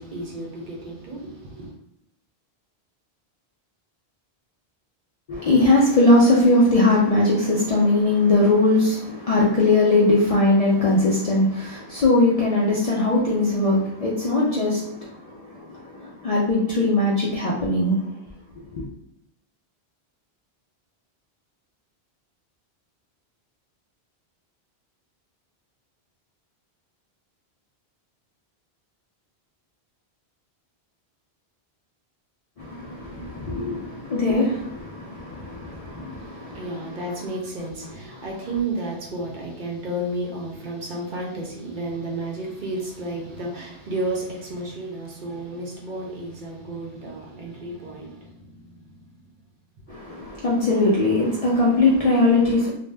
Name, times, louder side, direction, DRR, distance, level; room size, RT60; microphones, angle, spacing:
voice 1, 0.0-1.7 36.1-49.3, right 2 dB, 55° right, -2 dB, 0.7 m, -32 dB
voice 2, 5.3-18.0 18.7-18.8 32.6-37.0 49.9-52.7, left 2 dB, 50° left, -5 dB, 0.4 m, -20 dB
2.5 x 2.1 x 3.2 m, 0.77 s
omnidirectional pair, 1.1 m